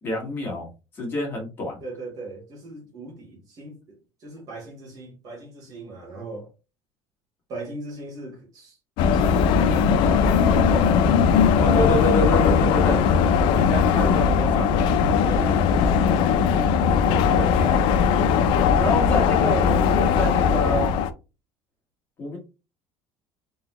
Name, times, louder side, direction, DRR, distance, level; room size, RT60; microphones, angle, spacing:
voice 1, 0.0-0.7 0.9-1.8 11.6-13.0 13.5-14.7 17.0-17.8 18.7-20.9 22.2-22.4, left 1 dB, 20° left, 1.9 m, -27 dB
voice 2, 1.8-6.5 7.5-8.8 9.0-11.1 15.3-15.9, right 2 dB, 35° right, 2.1 m, -38 dB
sound 1, 9.0-21.1, left 6 dB, 55° left, 0.5 m, -19 dB
3.8 x 3.8 x 3.1 m
cardioid pair, 175°, 10 cm